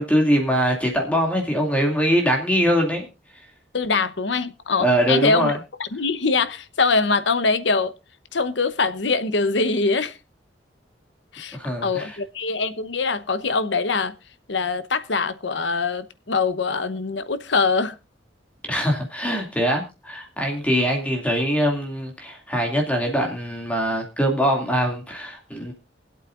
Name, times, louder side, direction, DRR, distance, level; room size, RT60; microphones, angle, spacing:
voice 1, 0.0-3.1 4.8-5.6 11.5-12.2 18.6-25.7, equal, 10° left, 2.4 m, -22 dB
voice 2, 3.7-5.5 5.8-7.9 8.3-10.2 11.3-14.1 14.5-18.0, left 4 dB, 75° left, 0.9 m, -23 dB
24.0 x 8.3 x 2.5 m
head